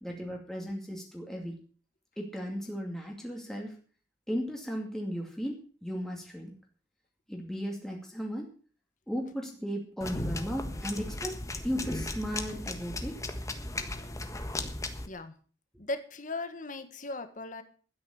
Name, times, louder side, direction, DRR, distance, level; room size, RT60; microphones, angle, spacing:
voice 1, 0.0-1.6 2.2-3.8 4.3-6.6 7.3-8.5 9.1-13.2, equal, 5° left, 0 dB, 2.4 m, -36 dB
sound 1, 10.0-15.1, left 2 dB, 20° left, 1.4 m, -36 dB
voice 2, 15.8-17.6, left 2 dB, 45° left, 9 dB, 1.6 m, -37 dB
12.5 x 9.8 x 7.1 m, 0.41 s
head